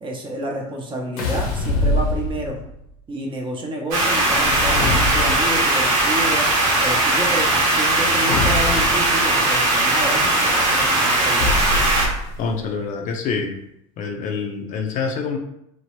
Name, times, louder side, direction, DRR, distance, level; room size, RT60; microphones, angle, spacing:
voice 1, 0.0-2.6 3.1-6.5 6.8-11.8, right 1 dB, 30° right, 0 dB, 0.7 m, -29 dB
sound 1, 1.2-2.8 4.2-5.7 8.3-9.1 11.4-12.5, left 2 dB, 80° left, 0.7 m, -24 dB
sound 2, 3.9-12.1, right 2 dB, 75° right, 1.1 m, -19 dB
voice 2, 12.4-13.6 14.0-15.4, left 5 dB, 45° left, 3 dB, 0.4 m, -26 dB
2.9 x 2.0 x 3.0 m, 0.78 s
hypercardioid pair, 90°, 18 cm